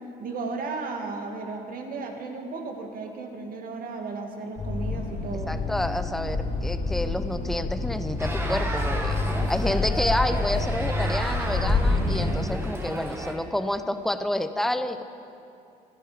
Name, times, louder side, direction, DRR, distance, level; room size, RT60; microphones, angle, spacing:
voice 1, 0.2-5.7 9.4-9.8, right 4 dB, 55° right, 3 dB, 2.3 m, -35 dB
sound 1, 4.6-12.4, left 3 dB, 50° left, 3.6 m, -27 dB
voice 2, 5.5-9.2 9.5-15.0, left 1 dB, ahead, 10 dB, 0.7 m, -29 dB
sound 2, 8.2-13.3, right 1 dB, 15° right, 1.8 m, -33 dB
25.5 x 10.0 x 5.2 m, 2.6 s
cardioid pair, 110°, 17 cm